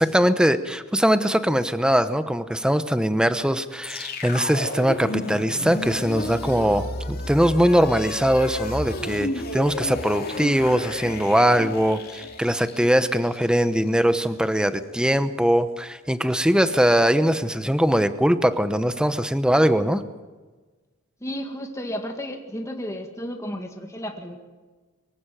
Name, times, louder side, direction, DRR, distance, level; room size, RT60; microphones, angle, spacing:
voice 1, 0.0-20.0, equal, 5° right, 11 dB, 0.9 m, -21 dB
sound 1, 3.8-14.0, left 2 dB, 45° left, 2.7 m, -33 dB
voice 2, 21.2-24.4, equal, 15° left, 3 dB, 1.9 m, -33 dB
23.5 x 15.5 x 9.2 m, 1.3 s
head